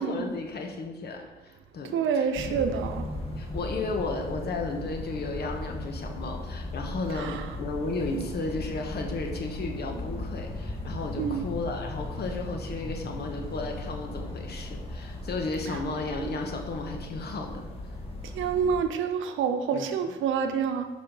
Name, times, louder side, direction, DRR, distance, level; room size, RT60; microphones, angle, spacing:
voice 1, 0.0-2.7 3.1-17.6 19.7-20.1, left 3 dB, 55° left, 3 dB, 1.2 m, -34 dB
voice 2, 1.9-3.1 7.1-7.4 11.2-11.4 18.3-20.9, right 7 dB, 80° right, 7 dB, 0.8 m, -27 dB
sound 1, 2.3-18.8, left 1 dB, 30° left, 1.6 m, -37 dB
5.7 x 5.4 x 5.4 m, 1.2 s
cardioid pair, 90°, 20 cm